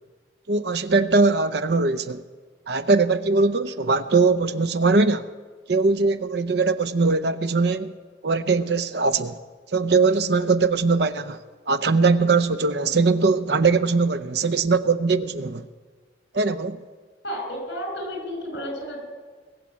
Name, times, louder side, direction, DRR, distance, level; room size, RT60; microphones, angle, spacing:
voice 1, 0.5-2.2 2.7-5.2 5.7-7.9 8.2-9.4 9.7-11.4 11.7-15.7 16.3-16.8, right 4 dB, 60° right, 0.6 m, -21 dB
voice 2, 17.2-19.0, equal, 65° left, 5.1 m, -32 dB
20.5 x 7.3 x 8.3 m
head